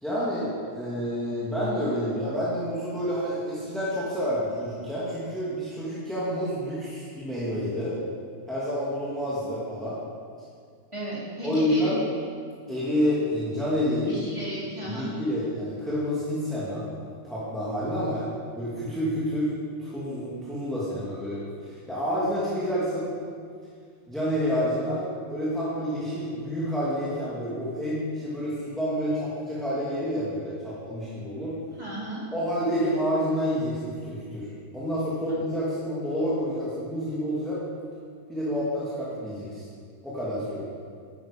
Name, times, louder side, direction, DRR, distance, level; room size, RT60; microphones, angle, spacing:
voice 1, 0.0-8.0 8.5-10.0 11.4-12.0 12.7-14.2 14.8-16.8 17.2-18.3 18.5-19.5 19.8-23.1 24.1-31.6 32.3-37.6 38.3-39.6 40.0-40.7, equal, ahead, -9 dB, 2.1 m, -29 dB
voice 2, 10.9-11.9 14.0-15.1 31.8-32.2, equal, 20° right, -8 dB, 3.2 m, -34 dB
10.5 x 9.9 x 5.1 m, 2.1 s
omnidirectional pair, 1.7 m